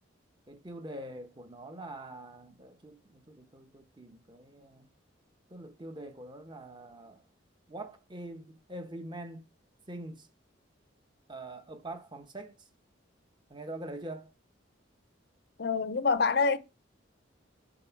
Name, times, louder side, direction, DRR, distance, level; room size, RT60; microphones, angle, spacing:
voice 1, 0.5-4.8 5.5-7.2 7.7-9.5 9.9-10.3 11.3-12.5 13.5-14.3, right 1 dB, 25° right, 0.9 m, -44 dB
voice 2, 15.6-16.6, left 4 dB, 55° left, 0.6 m, -26 dB
7.6 x 4.7 x 4.6 m
head